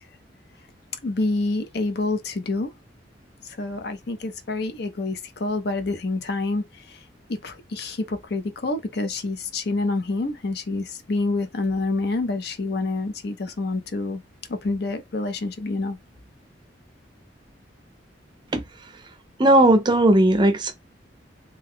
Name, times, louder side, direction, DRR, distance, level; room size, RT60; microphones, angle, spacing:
voice 1, 1.0-2.7 3.4-7.0 7.3-14.2 14.5-16.0, left 2 dB, 60° left, 0.6 m, -27 dB
voice 2, 19.4-20.7, right 1 dB, 25° right, 0.5 m, -17 dB
2.8 x 2.2 x 3.5 m
head